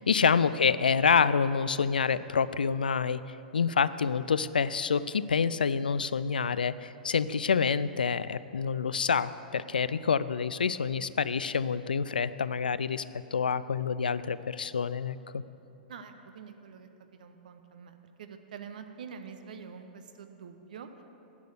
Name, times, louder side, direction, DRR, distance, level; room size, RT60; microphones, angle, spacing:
voice 1, 0.0-3.2 3.5-13.0 13.3-15.4, left 6 dB, 75° left, 16 dB, 0.3 m, -27 dB
voice 2, 15.9-21.0, right 6 dB, 60° right, 7 dB, 0.9 m, -46 dB
10.5 x 6.6 x 8.0 m, 2.8 s
figure-of-eight pair, 105°, 5 cm